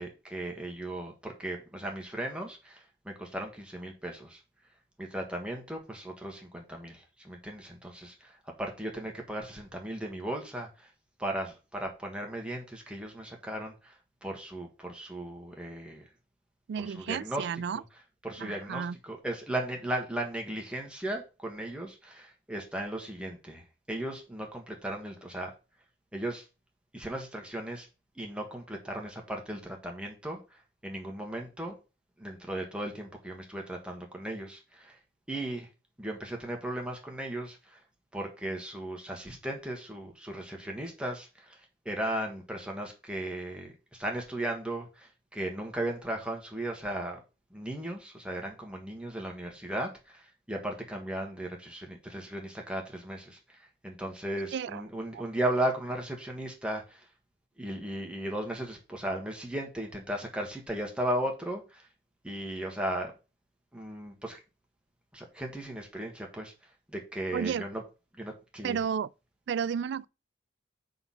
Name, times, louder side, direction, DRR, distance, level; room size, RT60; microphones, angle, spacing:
voice 1, 0.0-4.4 5.0-10.9 11.2-16.0 16.8-17.5 17.7-17.8 18.2-25.5 26.1-26.4 26.9-27.9 28.1-31.7 32.2-35.0 35.3-35.7 36.0-37.8 38.1-47.2 47.5-57.1 57.6-61.9 62.2-63.1 63.7-64.4 65.1-66.5 66.9-67.8 68.2-68.8, right 1 dB, 5° right, 1.4 m, -36 dB
voice 2, 16.7-17.8 18.4-19.0 54.5-54.8 55.1-55.2 67.3-67.6 68.6-69.1 69.5-70.0, right 7 dB, 60° right, 0.3 m, -32 dB
8.0 x 3.9 x 5.7 m
head